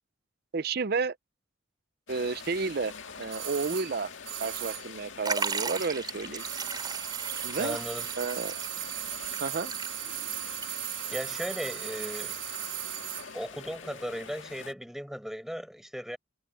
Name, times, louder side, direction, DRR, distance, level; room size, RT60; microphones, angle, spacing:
voice 1, 0.5-1.2 2.1-2.9 3.2-4.1 4.4-6.4 7.4-7.8 8.2-8.5 9.4-9.7, right 4 dB, 50° right, 0.6 m, -31 dB
sound 1, 2.1-14.7, left 6 dB, 75° left, 2.0 m, -45 dB
sound 2, 3.3-6.1 6.3-13.3 13.6-13.7, right 13 dB, 70° right, 1.3 m, -37 dB
Liquid, 5.2-10.3 10.6-10.7 11.7-11.8, right 4 dB, 20° right, 4.0 m, -36 dB
voice 2, 7.6-8.1 11.1-12.4 13.3-16.2, equal, ahead, 5.0 m, -36 dB
head